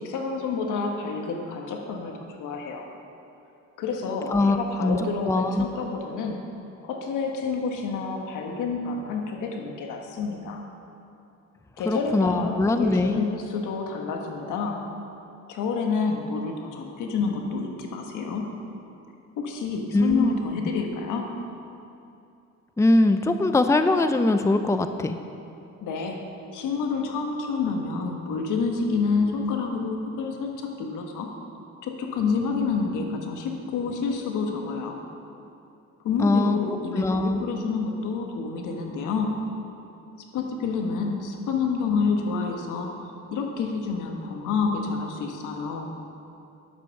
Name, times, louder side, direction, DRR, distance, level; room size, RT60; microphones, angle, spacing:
voice 1, 0.0-2.9 3.8-6.4 6.8-10.6 11.8-14.8 15.5-18.5 19.4-21.3 25.8-26.2 26.5-31.3 31.8-35.0 36.0-39.5 40.3-43.0 43.3-45.9, left 4 dB, 85° left, 2 dB, 1.5 m, -28 dB
voice 2, 4.3-5.7 11.9-13.3 19.9-20.3 22.8-25.2 36.2-37.4, left 2 dB, 10° left, 8 dB, 0.5 m, -22 dB
10.5 x 7.6 x 6.5 m, 2.7 s
cardioid pair, 90°, 30 cm